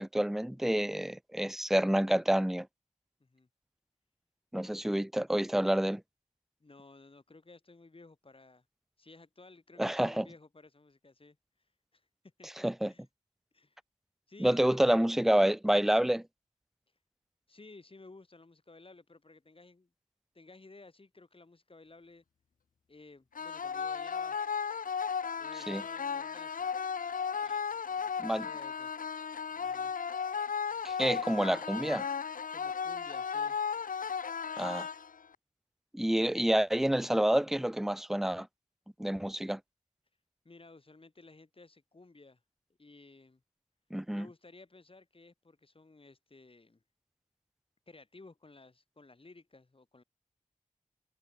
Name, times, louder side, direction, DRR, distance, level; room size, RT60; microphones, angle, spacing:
voice 1, 0.0-2.7 4.5-6.0 9.8-10.3 12.6-12.9 14.4-16.3 25.7-25.8 28.2-28.5 30.8-32.0 34.6-34.9 35.9-38.5 39.0-39.6 43.9-44.3, right 1 dB, 5° right, 0.5 m, -28 dB
voice 2, 6.6-8.6 9.0-11.4 11.9-12.1 12.4-13.0 13.5-13.8 14.3-15.1 17.5-19.9 20.3-22.2 22.9-24.4 25.3-26.8 27.3-28.9 29.5-29.9 32.5-33.6 40.4-42.4 42.8-43.4 44.1-46.8 47.9-50.0, left 3 dB, 40° left, 4.4 m, -55 dB
sound 1, 23.3-35.3, left 6 dB, 85° left, 0.7 m, -35 dB
wide cardioid pair, 80°, 14 cm